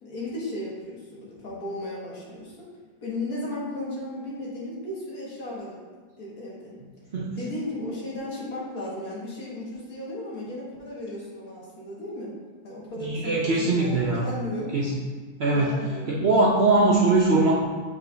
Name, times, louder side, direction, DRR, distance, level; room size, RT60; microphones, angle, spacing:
voice 1, 0.0-2.7 3.0-5.8 6.2-6.8 7.4-12.3 12.6-14.9 15.5-16.1, left 1 dB, 65° left, -5 dB, 1.9 m, -35 dB
voice 2, 13.0-14.2 14.7-14.9 15.4-15.7 16.1-17.6, right 2 dB, 55° right, -4 dB, 0.8 m, -21 dB
7.4 x 4.8 x 2.7 m, 1.5 s
omnidirectional pair, 1.7 m